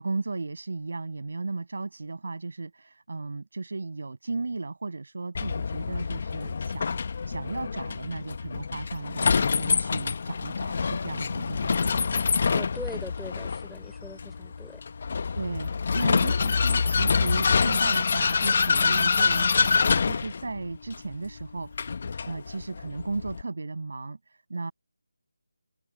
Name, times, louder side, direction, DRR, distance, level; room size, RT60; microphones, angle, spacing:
voice 1, 0.0-6.9 7.3-12.3 15.3-21.7 22.3-24.7, right 3 dB, 60° right, 7.2 m, -35 dB
Vehicle, 5.3-23.4, left 5 dB, 45° left, 1.2 m, -26 dB
voice 2, 12.5-14.8, left 2 dB, ahead, 4.6 m, -41 dB
figure-of-eight pair, 160°, 0 cm